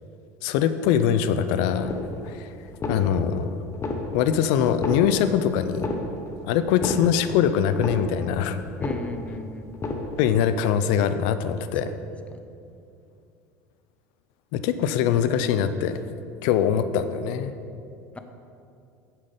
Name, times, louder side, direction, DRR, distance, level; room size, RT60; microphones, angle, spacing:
voice 1, 0.4-2.0 2.2-2.5 2.9-3.6 4.1-5.9 6.4-8.6 10.2-11.9 14.5-16.0 16.4-17.5, left 8 dB, 70° left, 11 dB, 0.6 m, -23 dB
sound 1, 1.8-2.4 2.7-3.4 3.7-4.4 4.7-5.4 5.7-6.4 6.7-7.4 7.7-8.4 8.7-9.4 9.7-10.4, left 2 dB, 30° left, 1.2 m, -31 dB
voice 2, 8.8-9.7 12.3-12.4 18.1-18.2, left 3 dB, 15° left, 8 dB, 0.8 m, -36 dB
7.6 x 7.6 x 5.2 m, 2.6 s
hypercardioid pair, 85°, 8 cm